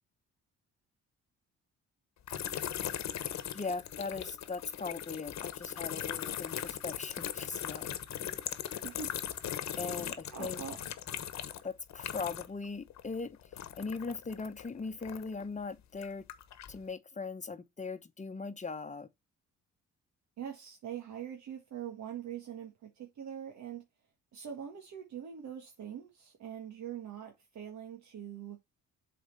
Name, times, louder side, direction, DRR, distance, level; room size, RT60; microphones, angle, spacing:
sound 1, 2.3-12.6 12.9-15.4 15.9-16.8, left 10 dB, 65° left, 1.2 m, -39 dB
voice 1, 3.5-7.9 9.8-10.6 11.6-13.4 13.8-16.3 16.7-19.1, left 4 dB, 25° left, 1.0 m, -39 dB
voice 2, 10.3-10.8 20.4-23.8 24.3-28.6, right 9 dB, 70° right, 1.6 m, -43 dB
7.3 x 4.3 x 4.2 m
cardioid pair, 90°, 30 cm